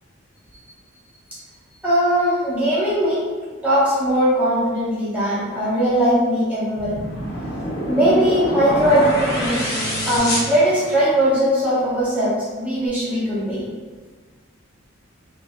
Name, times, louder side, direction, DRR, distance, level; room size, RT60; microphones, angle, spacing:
voice 1, 1.8-3.2 3.6-6.9 7.9-9.6 10.1-12.3 12.6-13.7, equal, 5° right, -9 dB, 0.7 m, -19 dB
sound 1, 6.8-11.4, equal, 50° left, 0.7 m, -26 dB
2.7 x 2.5 x 2.3 m, 1.4 s
head